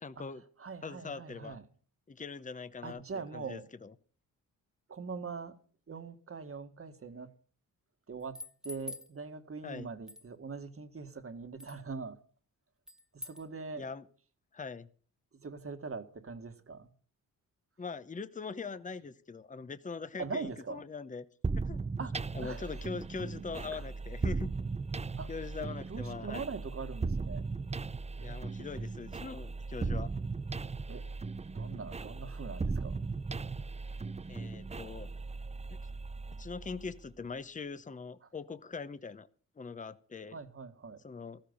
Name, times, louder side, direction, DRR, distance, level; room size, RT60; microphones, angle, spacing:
voice 1, 0.0-0.4 0.8-1.6 2.1-3.9 9.6-9.9 13.8-14.1 14.5-14.9 17.8-21.2 21.7-21.8 22.3-24.5 25.3-26.5 28.2-30.1 34.3-35.1 36.4-39.3 39.6-40.4 41.0-41.4, left 5 dB, 20° left, 0.9 m, -42 dB
voice 2, 0.6-1.6 2.8-3.7 4.9-5.5 5.9-7.3 8.1-8.4 8.6-12.2 13.1-13.9 15.3-16.9 20.2-20.8 22.0-22.7 23.7-23.8 25.2-27.4 28.2-28.4 30.9-31.0 31.5-33.0 40.3-41.0, right 4 dB, 40° right, 1.7 m, -42 dB
sound 1, 8.2-9.1 10.1-10.3 11.6-11.8 12.9-13.5, left 2 dB, ahead, 1.5 m, -45 dB
sound 2, 21.4-37.1, right 4 dB, 20° right, 0.6 m, -37 dB
14.0 x 13.5 x 5.4 m
cardioid pair, 90°, 34 cm